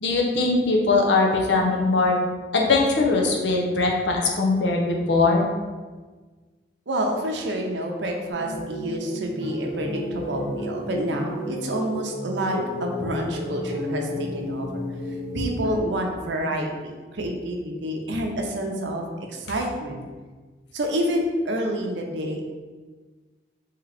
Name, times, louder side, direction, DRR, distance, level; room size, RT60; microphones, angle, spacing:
voice 1, 0.0-2.2 2.5-5.5, left 3 dB, 85° left, 0 dB, 0.6 m, -21 dB
voice 2, 6.9-14.8 15.3-19.0 19.3-20.0 20.7-22.5, right 1 dB, 85° right, 2 dB, 0.6 m, -28 dB
sound 1, 8.3-15.8, left 1 dB, 65° left, 1.1 m, -32 dB
3.7 x 2.8 x 3.3 m, 1.4 s
head